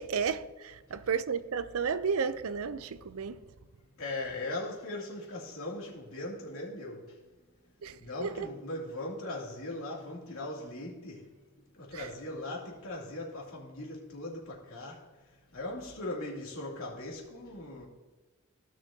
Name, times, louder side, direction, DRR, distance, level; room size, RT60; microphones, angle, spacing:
voice 1, 0.0-3.4 7.8-8.5 11.9-12.1, right 6 dB, 80° right, 0.5 m, -33 dB
voice 2, 4.0-7.1 8.0-11.2 11.7-15.0 15.5-17.9, left 2 dB, 70° left, 2.7 m, -39 dB
16.0 x 6.3 x 2.8 m
head